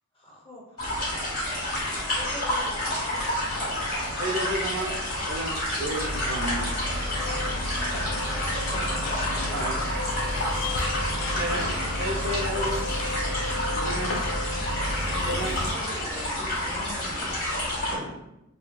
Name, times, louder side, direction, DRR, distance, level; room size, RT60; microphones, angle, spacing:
voice 1, 0.2-0.9 2.2-3.3 8.7-9.0 9.3-10.1, equal, 25° left, -3 dB, 0.6 m, -43 dB
sound 1, 0.8-17.9, left 1 dB, 50° left, 1.1 m, -29 dB
voice 2, 4.2-4.9 5.2-6.7 9.5-9.8 11.4-12.8 13.8-14.1 15.3-15.6, right 1 dB, 65° right, 1 dB, 0.5 m, -32 dB
sound 2, 5.9-15.7, left 1 dB, 70° left, 0.4 m, -32 dB
voice 3, 15.0-18.4, equal, 15° right, -5 dB, 0.6 m, -41 dB
3.0 x 2.2 x 2.2 m, 0.85 s
head